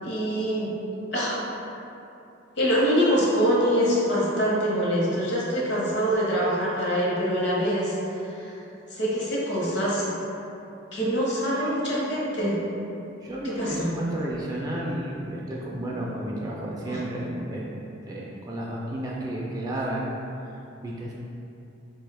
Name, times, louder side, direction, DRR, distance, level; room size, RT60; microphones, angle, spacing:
voice 1, 0.0-0.7 1.1-1.4 2.6-8.0 8.4-8.5 8.9-10.1 10.9-12.6 13.4-13.9 16.9-17.0, equal, 60° left, -5 dB, 0.8 m, -24 dB
voice 2, 13.2-17.7 18.0-20.1 20.8-21.1, right 1 dB, 20° right, -4 dB, 0.3 m, -32 dB
4.0 x 2.3 x 3.3 m, 2.8 s
head